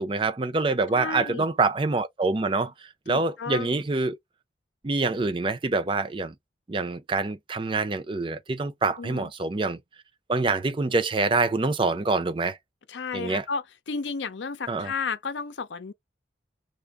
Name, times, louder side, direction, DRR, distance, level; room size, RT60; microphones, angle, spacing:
voice 1, 0.0-2.7 3.1-4.2 4.8-6.3 6.7-9.8 10.3-12.6 13.1-13.4 14.7-14.9, right 3 dB, 25° right, 0.4 m, -26 dB
voice 2, 0.9-1.5 3.1-3.8 9.0-9.3 12.9-15.9, left 5 dB, 80° left, 0.6 m, -33 dB
3.3 x 2.0 x 3.5 m
head